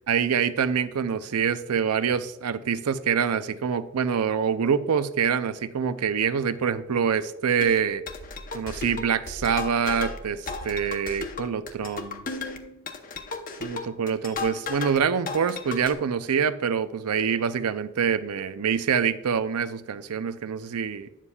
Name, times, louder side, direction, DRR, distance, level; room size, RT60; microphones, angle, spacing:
voice 1, 0.1-8.0 8.5-12.2 13.6-21.1, right 7 dB, 85° right, 12 dB, 0.5 m, -25 dB
sound 1, 7.6-15.0 15.3-15.9, left 4 dB, 40° left, 0.7 m, -35 dB
9.7 x 7.3 x 2.3 m, 0.94 s
head